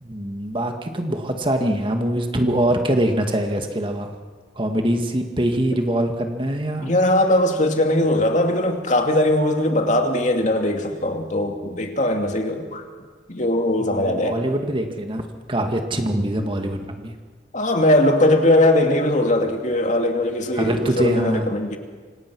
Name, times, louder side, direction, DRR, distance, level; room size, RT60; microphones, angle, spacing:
voice 1, 0.0-4.2 4.6-6.9 13.8-17.1 20.5-21.5, right 1 dB, 30° right, 4 dB, 2.0 m, -23 dB
voice 2, 6.8-12.8 13.3-14.4 17.5-21.8, left 1 dB, 45° left, 4 dB, 2.5 m, -20 dB
26.5 x 26.5 x 6.2 m, 1.6 s
head